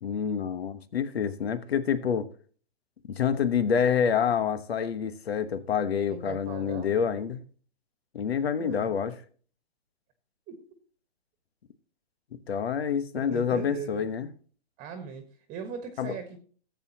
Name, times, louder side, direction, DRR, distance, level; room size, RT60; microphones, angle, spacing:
voice 1, 0.0-2.3 3.1-7.4 8.1-9.1 12.5-14.3 16.0-16.1, left 7 dB, 80° left, 1.3 m, -27 dB
voice 2, 6.1-7.0 8.6-8.9 10.5-10.6 13.1-14.1 14.8-16.4, right 6 dB, 25° right, 1.4 m, -39 dB
14.0 x 8.2 x 2.8 m
hypercardioid pair, 135°, 31 cm